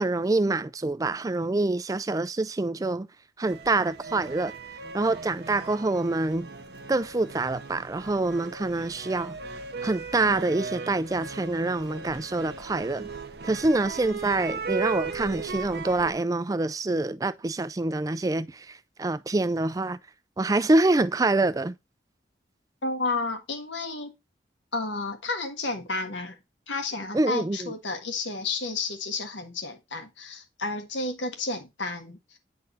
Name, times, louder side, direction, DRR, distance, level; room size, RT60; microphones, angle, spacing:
voice 1, 0.0-3.1 3.4-4.5 4.9-6.5 6.9-9.4 9.8-13.1 13.4-20.0 20.4-21.7 27.1-27.7, right 2 dB, 20° right, 0.3 m, -26 dB
sound 1, 3.4-16.1, right 4 dB, 60° right, 0.7 m, -38 dB
voice 2, 22.8-24.1 24.7-26.4 26.7-32.4, left 3 dB, 85° left, 1.5 m, -31 dB
9.7 x 3.9 x 2.6 m
head